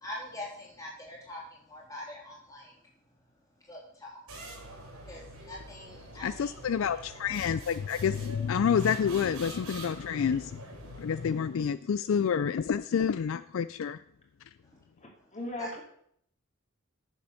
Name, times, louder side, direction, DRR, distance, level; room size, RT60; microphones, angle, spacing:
voice 1, 0.0-2.7 3.6-4.2 5.0-6.6 11.5-11.6 14.7-14.8 15.6-15.7, left 1 dB, 15° left, -3 dB, 3.0 m, -44 dB
sound 1, 4.3-11.7, right 1 dB, 85° right, 3.6 m, -46 dB
voice 2, 6.2-10.6 11.0-14.0, left 7 dB, 65° left, 14 dB, 0.3 m, -28 dB
voice 3, 15.0-15.8, left 1 dB, 30° left, 0 dB, 2.6 m, -38 dB
9.7 x 7.0 x 6.4 m, 0.68 s
head